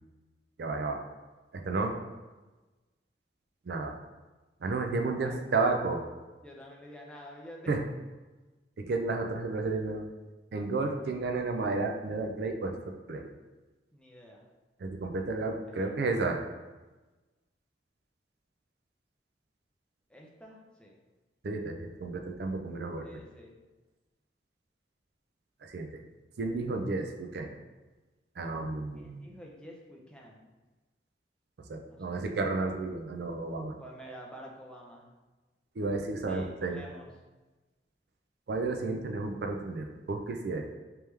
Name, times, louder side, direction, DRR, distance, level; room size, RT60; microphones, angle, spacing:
voice 1, 0.6-1.0 1.5-1.9 3.7-3.9 4.6-6.0 7.7-7.8 8.8-10.0 10.5-13.3 14.8-16.4 21.4-23.1 25.6-25.9 26.4-27.5 28.4-29.2 31.7-33.7 35.8-36.8 38.5-40.6, right 3 dB, 65° right, 4 dB, 0.4 m, -32 dB
voice 2, 6.4-7.7 13.9-14.4 15.7-16.2 20.1-21.0 23.0-23.5 28.9-30.5 31.9-32.3 33.8-35.1 36.3-37.1, equal, 5° left, -2 dB, 0.5 m, -49 dB
3.4 x 3.0 x 3.2 m, 1.2 s
head